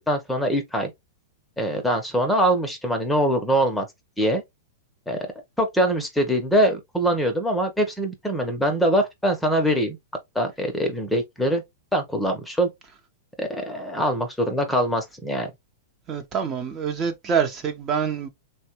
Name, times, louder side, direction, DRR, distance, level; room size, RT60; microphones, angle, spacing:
voice 1, 0.1-0.9 1.6-3.8 4.2-4.4 5.1-5.3 5.6-10.0 10.3-11.6 11.9-12.7 13.4-15.5, equal, 5° left, 0.8 m, -23 dB
voice 2, 16.1-18.3, right 6 dB, 25° right, 0.7 m, -26 dB
3.3 x 2.2 x 3.0 m
hypercardioid pair, 130°, 0 cm